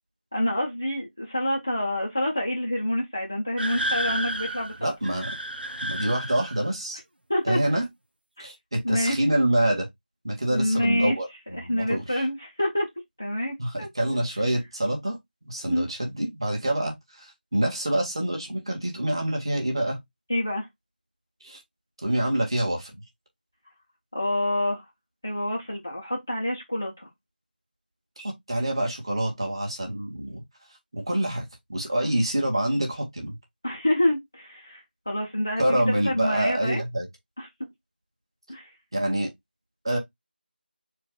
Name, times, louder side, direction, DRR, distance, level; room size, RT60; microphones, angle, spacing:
voice 1, 0.3-4.9 7.3-7.6 8.4-8.5 8.8-9.2 10.5-11.2 11.5-12.9 13.2-13.9 15.7-15.9 20.3-20.7 24.1-24.8 25.2-27.1 33.6-36.8 37.4-37.5 38.5-38.7, left 1 dB, 15° left, 0.4 m, -27 dB
sound 1, 3.6-6.7, right 1 dB, 65° right, 1.0 m, -31 dB
voice 2, 4.8-5.3 5.8-7.0 7.4-7.9 8.4-9.9 10.2-12.2 13.6-15.2 15.4-20.0 21.4-21.6 22.0-22.9 28.2-30.4 30.9-31.4 31.7-33.4 35.6-37.1 38.9-39.3 39.8-40.0, right 1 dB, 30° right, 1.5 m, -26 dB
4.3 x 2.3 x 4.7 m
figure-of-eight pair, 175°, 6 cm